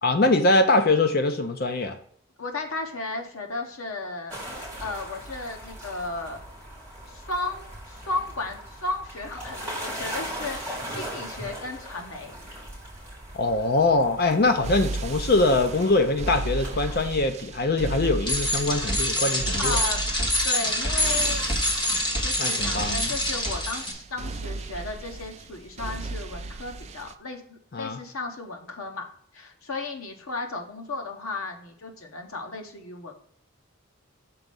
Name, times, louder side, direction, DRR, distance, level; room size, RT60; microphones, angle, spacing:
voice 1, 0.0-2.0 13.3-19.8 22.4-23.1 27.7-28.0, left 2 dB, 45° left, 8 dB, 0.6 m, -23 dB
voice 2, 2.4-4.4 4.8-6.4 7.1-12.3 19.6-20.0 20.4-21.4 22.2-29.0 29.3-33.1, left 3 dB, 80° left, 4 dB, 1.3 m, -34 dB
sound 1, 4.3-17.1, right 1 dB, 5° left, 3.3 m, -39 dB
sound 2, 14.6-27.1, right 2 dB, 30° right, 0.3 m, -35 dB
Bicycle, 18.2-23.9, left 1 dB, 20° left, 1.3 m, -26 dB
6.1 x 4.4 x 5.2 m, 0.64 s
head